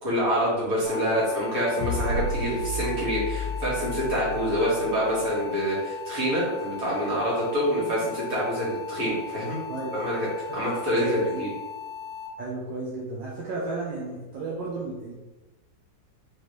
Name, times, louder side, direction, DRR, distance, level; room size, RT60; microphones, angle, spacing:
voice 1, 0.0-9.6 9.9-10.2 10.5-11.5, equal, 50° right, -8 dB, 2.0 m, -26 dB
sound 1, 0.8-12.3, left 7 dB, 40° left, 0.9 m, -38 dB
sound 2, 1.8-5.2, left 1 dB, 75° left, 1.1 m, -32 dB
voice 2, 10.9-11.4 12.4-15.1, right 2 dB, 80° right, -5 dB, 1.4 m, -33 dB
4.2 x 3.1 x 3.1 m, 1.1 s
omnidirectional pair, 2.0 m